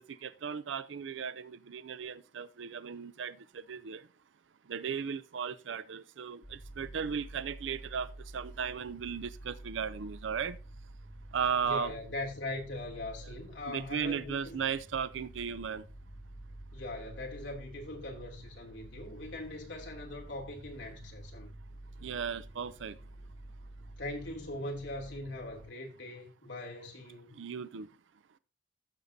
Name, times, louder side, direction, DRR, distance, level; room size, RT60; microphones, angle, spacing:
voice 1, 0.0-4.1 4.7-10.6 11.3-11.9 13.6-15.8 22.0-23.0 27.3-27.9, right 6 dB, 80° right, 0.5 m, -36 dB
sound 1, 6.4-25.7, right 1 dB, 40° left, 2.6 m, -49 dB
voice 2, 11.6-14.6 16.7-21.5 24.0-27.4, left 2 dB, 70° left, 2.8 m, -41 dB
15.0 x 6.6 x 2.7 m
head